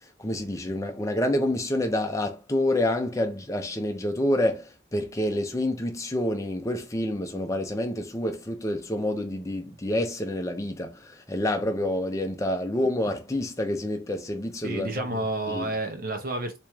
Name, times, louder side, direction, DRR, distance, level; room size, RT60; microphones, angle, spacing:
voice 1, 0.2-15.1 15.5-15.7, left 1 dB, 15° left, 0.5 m, -28 dB
voice 2, 14.6-16.6, right 2 dB, 45° right, 0.8 m, -30 dB
3.0 x 3.0 x 3.5 m
head